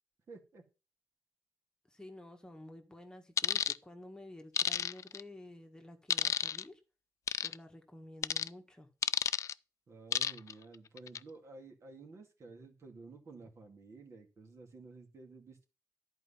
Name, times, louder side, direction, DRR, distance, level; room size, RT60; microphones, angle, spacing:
voice 1, 0.3-0.6 9.9-15.6, right 3 dB, 45° right, 2.3 m, -52 dB
voice 2, 1.9-6.8 7.4-8.9, left 1 dB, 10° left, 1.6 m, -51 dB
sound 1, 3.4-3.8 4.6-5.2 6.1-6.6 7.3-7.5 8.2-8.5 9.0-9.5 10.1-10.5 11.0-11.2, left 8 dB, 50° left, 0.3 m, -31 dB
11.0 x 4.6 x 5.6 m
cardioid pair, 110°, 7 cm